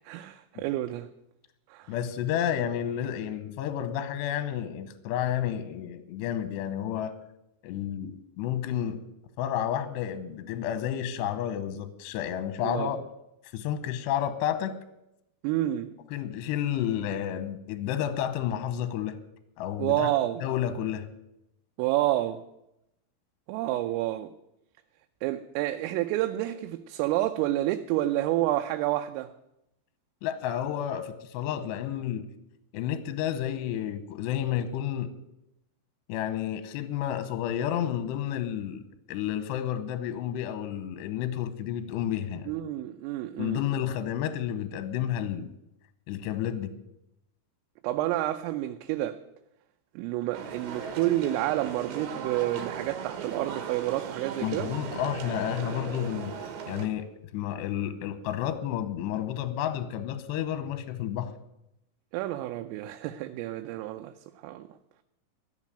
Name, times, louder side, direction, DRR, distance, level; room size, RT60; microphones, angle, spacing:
voice 1, 0.1-1.1 1.7-1.9 12.6-12.9 15.4-15.9 19.8-20.4 21.8-22.4 23.5-24.3 25.2-29.3 42.5-43.6 47.8-49.2 50.0-54.7 62.1-64.1 64.4-64.7, right 15 dB, 90° right, 3.3 m, -29 dB
voice 2, 1.9-7.1 7.6-9.0 9.4-13.0 13.5-14.8 16.1-19.2 19.6-20.1 20.4-21.1 30.2-32.3 32.7-35.1 36.1-38.8 39.1-42.5 43.4-45.5 46.1-46.7 54.4-56.3 56.7-61.3, left 10 dB, 75° left, 2.7 m, -31 dB
sound 1, 50.3-56.9, right 6 dB, 65° right, 2.8 m, -38 dB
13.5 x 7.5 x 9.9 m
omnidirectional pair, 5.8 m